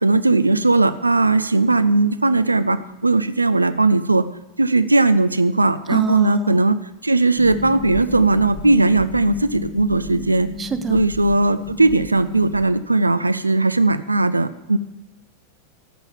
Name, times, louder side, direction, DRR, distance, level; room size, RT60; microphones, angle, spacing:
voice 1, 0.0-4.2 4.6-6.8 7.0-10.5 10.9-14.8, right 2 dB, 80° right, 12 dB, 0.4 m, -18 dB
voice 2, 5.9-6.6 10.6-11.0, right 4 dB, 20° right, 11 dB, 0.7 m, -25 dB
Harp, 7.4-12.6, left 4 dB, 35° left, 1.7 m, -33 dB
13.5 x 5.5 x 7.2 m, 1.0 s
figure-of-eight pair, 90°, 0 cm